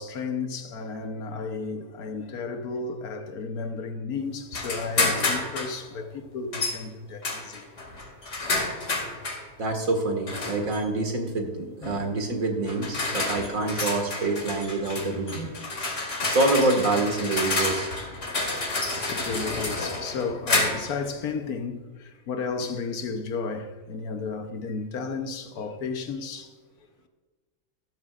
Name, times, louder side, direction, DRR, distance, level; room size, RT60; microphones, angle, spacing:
voice 1, 0.0-7.7 19.0-26.5, left 4 dB, 85° left, 1.5 m, -33 dB
sound 1, 4.5-5.8 6.5-6.8 7.2-9.4 10.3-10.8 11.8-12.0 12.7-21.0, left 2 dB, 55° left, 2.5 m, -29 dB
voice 2, 9.6-15.5 16.2-17.9, right 2 dB, 65° right, 2.3 m, -26 dB
13.0 x 12.5 x 2.5 m
omnidirectional pair, 1.5 m